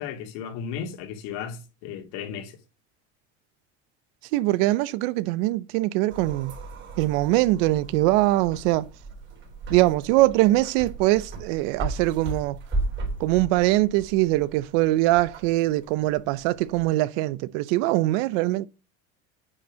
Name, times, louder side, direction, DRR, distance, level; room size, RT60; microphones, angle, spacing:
voice 1, 0.0-2.6, left 7 dB, 75° left, 2.8 m, -35 dB
voice 2, 4.3-6.5 7.0-8.9 9.7-12.6 13.2-18.7, right 17 dB, 85° right, 0.8 m, -22 dB
sound 1, 6.1-16.8, right 2 dB, 35° right, 3.2 m, -36 dB
9.9 x 4.5 x 6.3 m
cardioid pair, 155°, 33 cm